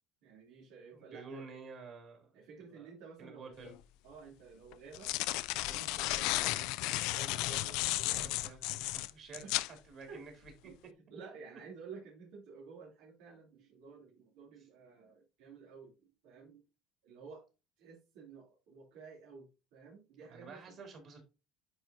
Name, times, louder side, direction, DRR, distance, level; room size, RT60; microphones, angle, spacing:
voice 1, 0.2-1.4 2.3-3.5 4.0-5.1 5.5-8.3 9.3-9.5 10.1-10.2 10.6-10.7 11.1-16.6 17.0-17.4 17.8-20.7, right 5 dB, 90° right, -5 dB, 3.2 m, -52 dB
voice 2, 0.9-2.3 2.7-2.9 3.2-3.7 7.9-9.4 9.9-10.5 20.3-21.2, right 4 dB, 40° right, 3 dB, 3.1 m, -50 dB
sound 1, 3.7-3.8 4.7-9.7, left 18 dB, 75° left, 0.4 m, -34 dB
9.4 x 4.7 x 2.8 m, 0.29 s
cardioid pair, 155°, 0 cm